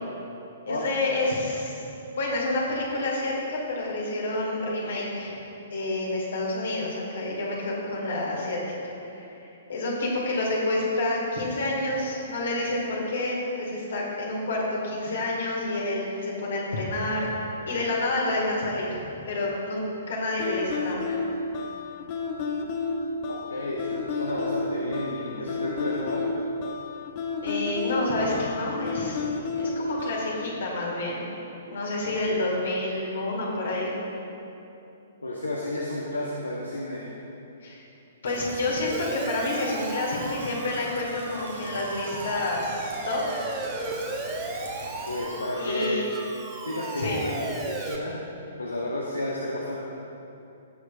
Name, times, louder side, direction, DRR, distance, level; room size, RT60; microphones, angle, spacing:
voice 1, 0.7-1.7 2.2-5.4 5.7-9.4 9.7-19.0 19.3-21.2 27.4-29.2 29.6-31.2 31.7-33.9 37.6-37.8 38.2-43.4 45.6-46.1 47.0-47.2, left 2 dB, 60° left, -3 dB, 1.9 m, -29 dB
sound 1, 20.4-30.5, left 4 dB, 35° left, 0.8 m, -31 dB
voice 2, 23.3-26.3 32.1-32.4 35.2-37.2 45.1-46.1 46.6-48.2 48.6-49.8, left 1 dB, 75° left, -3 dB, 0.9 m, -32 dB
sound 2, 38.2-45.2, right 2 dB, 70° right, 1.2 m, -42 dB
Siren, 38.9-48.0, right 2 dB, 15° right, 1.1 m, -36 dB
17.5 x 6.4 x 2.5 m, 2.9 s
figure-of-eight pair, 115°, 0 cm